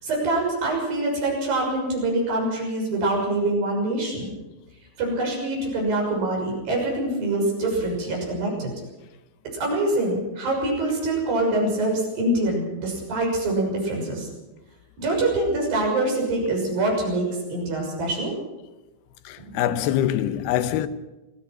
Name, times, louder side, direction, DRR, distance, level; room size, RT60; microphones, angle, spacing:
voice 1, 0.0-4.3 5.0-8.7 9.5-14.3 15.0-18.3 19.4-19.8, right 2 dB, 65° right, 8.1 m, -25 dB
voice 2, 19.3-20.9, left 11 dB, 90° left, 2.9 m, -24 dB
26.0 x 17.0 x 6.2 m
omnidirectional pair, 4.5 m